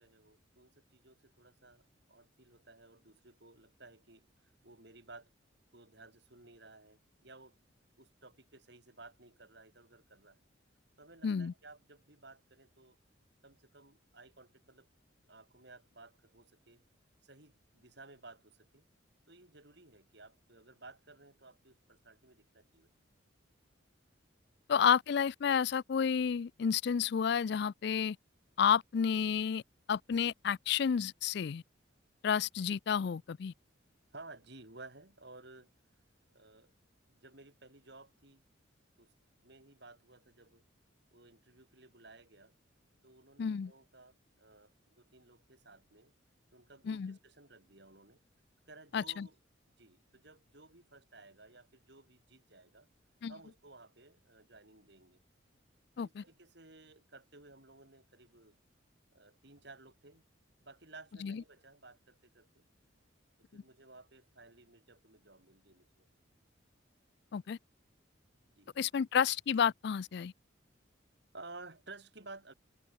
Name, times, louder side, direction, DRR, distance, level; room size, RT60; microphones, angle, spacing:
voice 1, 0.0-5.3 5.7-7.6 8.0-10.4 11.0-13.0 13.4-14.9 15.3-16.8 17.2-18.9 19.3-22.9 34.1-35.7 36.3-36.7 37.1-38.4 39.0-39.1 39.4-40.6 41.1-42.5 43.0-46.1 46.5-48.2 48.7-49.4 49.7-52.9 53.3-55.2 56.0-58.6 59.1-60.3 60.6-62.6 63.4-66.1 68.5-68.7 71.3-72.5, right 3 dB, 60° right, 5.4 m, -56 dB
voice 2, 24.7-28.2 28.6-29.6 29.9-31.6 32.2-33.5 43.4-43.7 46.9-47.2 48.9-49.3 53.2-53.3 56.0-56.2 61.2-61.4 63.5-63.6 67.3-67.6 68.8-70.3, left 7 dB, 55° left, 0.4 m, -31 dB
open air
head